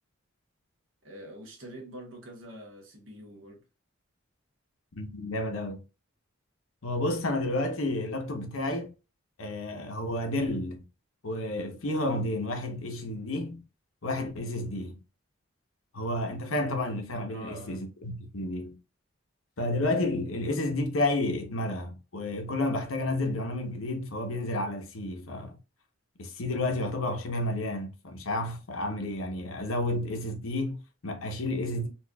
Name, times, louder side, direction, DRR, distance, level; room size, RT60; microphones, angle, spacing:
voice 1, 1.0-3.6 17.3-17.8, equal, 70° right, 1.2 m, -45 dB
voice 2, 5.0-5.8 6.8-8.9 9.4-10.8 11.2-13.6 14.0-15.0 15.9-18.8 19.6-25.6 26.2-31.9, left 1 dB, 80° left, 0.9 m, -31 dB
4.4 x 2.5 x 2.2 m
head